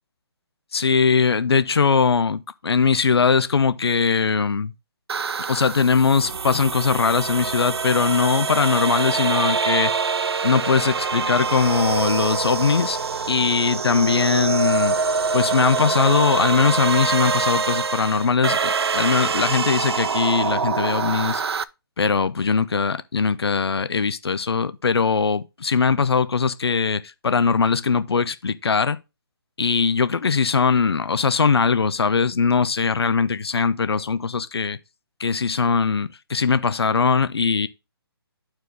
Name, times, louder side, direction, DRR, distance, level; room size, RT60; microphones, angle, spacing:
voice 1, 0.7-4.7 5.5-9.9 10.4-13.0 13.3-14.9 15.3-21.4 22.0-29.0 29.6-34.8 35.2-37.7, left 5 dB, 75° left, 0.7 m, -20 dB
sound 1, 5.1-21.6, right 5 dB, 80° right, 0.5 m, -25 dB
11.5 x 4.5 x 3.4 m
figure-of-eight pair, 145°, 13 cm